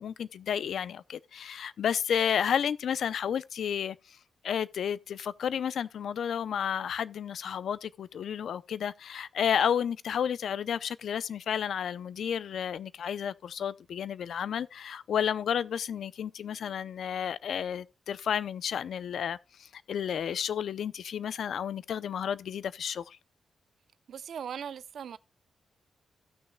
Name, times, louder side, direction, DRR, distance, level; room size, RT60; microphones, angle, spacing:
voice 1, 0.0-4.2 4.4-23.2, left 8 dB, 65° left, 0.5 m, -31 dB
voice 2, 24.1-25.2, right 8 dB, 65° right, 0.6 m, -39 dB
17.0 x 6.3 x 2.2 m
wide cardioid pair, 160°, 0 cm